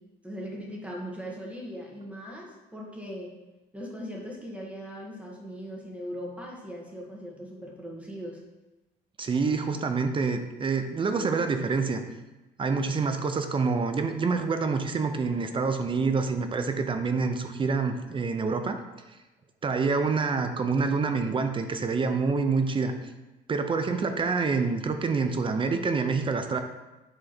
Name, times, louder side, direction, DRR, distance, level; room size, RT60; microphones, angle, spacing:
voice 1, 0.2-3.3 3.7-8.4, equal, 10° right, -2 dB, 1.7 m, -39 dB
voice 2, 9.2-12.0 12.6-18.8 19.6-22.9 23.5-26.6, right 4 dB, 30° right, 7 dB, 0.7 m, -27 dB
7.9 x 3.7 x 4.3 m, 1.1 s
cardioid pair, 110°, 17 cm